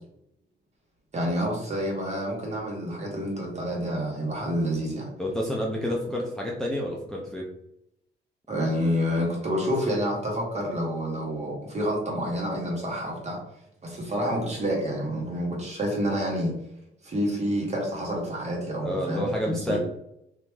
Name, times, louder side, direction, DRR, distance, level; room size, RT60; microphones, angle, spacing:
voice 1, 1.1-5.1 8.5-13.4 13.8-16.5 17.0-19.8, equal, 35° right, -2 dB, 1.4 m, -28 dB
voice 2, 5.2-7.4 18.8-19.8, equal, 5° left, -3 dB, 0.5 m, -29 dB
2.9 x 2.6 x 3.4 m, 0.80 s
cardioid pair, 90°, 20 cm